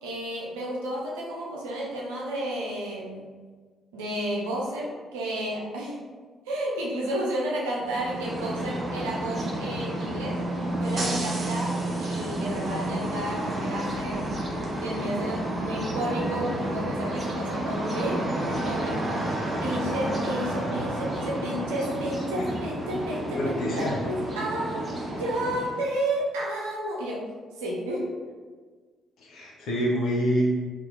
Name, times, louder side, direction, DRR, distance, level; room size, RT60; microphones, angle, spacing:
voice 1, 0.0-3.3 3.9-6.0 6.5-10.4 10.8-14.3 14.8-27.3 27.6-28.1, right 1 dB, 75° right, -4 dB, 0.5 m, -32 dB
sound 1, 7.8-25.9, right 1 dB, 35° right, 0.7 m, -30 dB
voice 2, 23.4-24.0 29.2-30.5, equal, 60° left, -3 dB, 0.7 m, -26 dB
2.8 x 2.5 x 3.5 m, 1.5 s
figure-of-eight pair, 45°, 0 cm